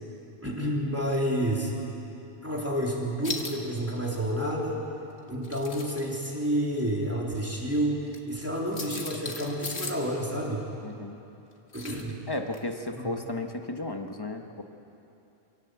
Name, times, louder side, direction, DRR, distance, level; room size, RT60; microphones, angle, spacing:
voice 1, 0.4-1.7 2.4-4.8 5.3-10.7 11.7-12.2 13.0-13.1, equal, 10° right, -4 dB, 3.6 m, -29 dB
sound 1, 3.2-3.6 5.3-6.0 8.1-8.2 8.7-10.1 11.7-12.1 12.5-12.6, left 4 dB, 75° left, 1.9 m, -37 dB
voice 2, 10.8-11.2 12.3-14.6, left 2 dB, 20° left, 4 dB, 1.3 m, -34 dB
26.0 x 17.5 x 8.2 m, 2.9 s
omnidirectional pair, 1.1 m